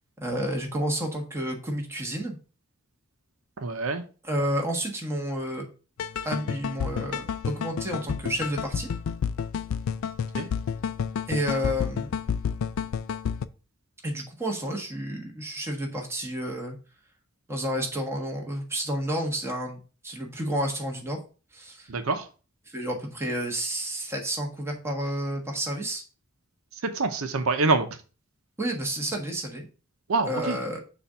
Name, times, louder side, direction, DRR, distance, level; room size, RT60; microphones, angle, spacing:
voice 1, 0.2-2.4 4.2-5.7 6.2-8.9 11.3-12.1 14.0-16.8 17.5-21.2 21.5-21.9 22.7-26.0 28.6-29.6 30.2-30.8, equal, 10° right, 1 dB, 1.3 m, -30 dB
voice 2, 3.6-4.0 10.4-10.5 21.9-22.2 27.0-27.9 30.1-30.6, right 3 dB, 85° right, 8 dB, 0.7 m, -25 dB
sound 1, 6.0-13.5, left 7 dB, 75° left, 0.4 m, -30 dB
6.8 x 2.5 x 5.5 m, 0.36 s
head